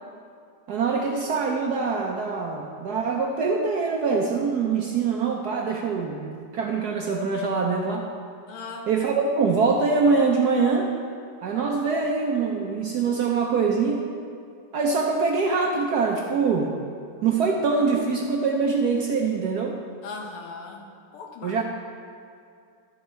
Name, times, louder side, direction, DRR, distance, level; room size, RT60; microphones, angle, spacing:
voice 1, 0.7-8.1 8.9-10.9 11.4-14.0 14.7-16.7 17.2-19.8 21.4-21.6, right 4 dB, 70° right, 1 dB, 1.0 m, -24 dB
voice 2, 8.5-8.9 17.9-18.2 20.0-20.9 21.1-21.6, left 4 dB, 85° left, 1 dB, 2.0 m, -39 dB
12.0 x 7.1 x 4.4 m, 2.4 s
omnidirectional pair, 2.4 m